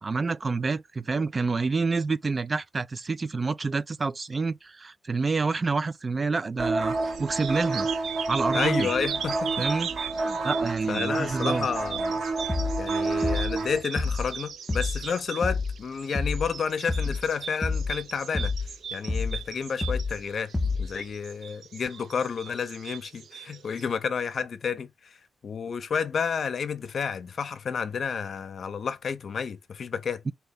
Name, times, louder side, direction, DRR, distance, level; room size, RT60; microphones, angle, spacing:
voice 1, 0.0-7.9 8.3-8.9 9.6-9.9 10.4-11.7 30.3-30.4, right 4 dB, 35° right, 0.3 m, -28 dB
sound 1, 6.6-13.8, right 3 dB, 60° right, 1.3 m, -29 dB
sound 2, 6.9-23.9, right 8 dB, 75° right, 0.7 m, -38 dB
voice 2, 8.5-9.7 10.2-10.4 10.9-12.2 12.8-18.5 18.9-20.5 20.8-25.2 25.4-30.2, left 6 dB, 60° left, 0.6 m, -30 dB
sound 3, 12.5-12.9 13.2-13.6 14.0-14.3 14.7-15.1 15.4-15.8 16.2-16.5 16.9-17.3 17.6-18.0 18.3-18.7 19.1-19.5 19.8-20.2 20.5-21.0, left 3 dB, 20° left, 0.6 m, -28 dB
3.8 x 2.8 x 3.5 m
cardioid pair, 95°, 0 cm